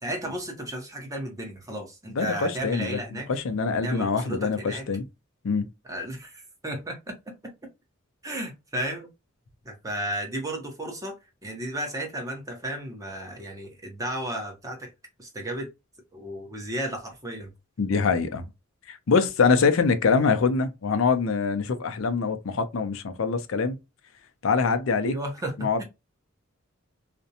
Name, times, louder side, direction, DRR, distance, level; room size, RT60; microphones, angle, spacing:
voice 1, 0.0-3.3 3.8-4.9 5.8-7.1 8.2-9.1 9.6-11.2 11.4-14.9 15.2-15.7 16.1-17.5 25.0-25.8, right 1 dB, 15° right, 0.8 m, -33 dB
voice 2, 2.1-5.1 5.4-5.7 17.8-18.5 18.9-23.8 24.4-25.2 25.6-25.8, left 5 dB, 70° left, 0.5 m, -24 dB
2.5 x 2.1 x 2.7 m
head